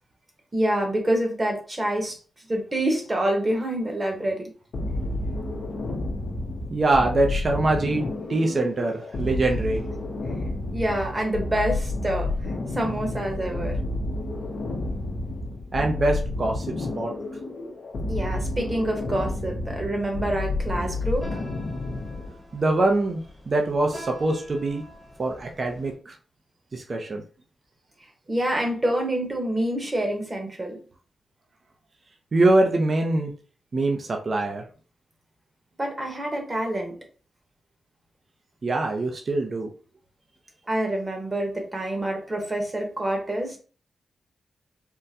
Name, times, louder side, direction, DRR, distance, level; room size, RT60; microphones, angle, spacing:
voice 1, 0.5-2.2 2.5-4.5 10.7-13.8 18.1-21.4 28.3-30.8 35.8-36.9 40.7-43.6, right 1 dB, 25° right, 2 dB, 1.0 m, -27 dB
sound 1, 4.7-22.3, left 2 dB, 70° left, 0.6 m, -30 dB
voice 2, 6.7-8.0 8.3-9.8 15.7-16.7 17.0-17.1 22.5-23.2 23.5-24.8 25.2-26.1 26.7-27.2 32.3-33.3 33.7-34.6 38.6-39.7, right 2 dB, 45° right, 2 dB, 0.5 m, -23 dB
sound 2, 20.8-26.0, equal, 15° left, 0.9 m, -45 dB
3.6 x 2.2 x 2.7 m, 0.39 s
cardioid pair, 90°, 0 cm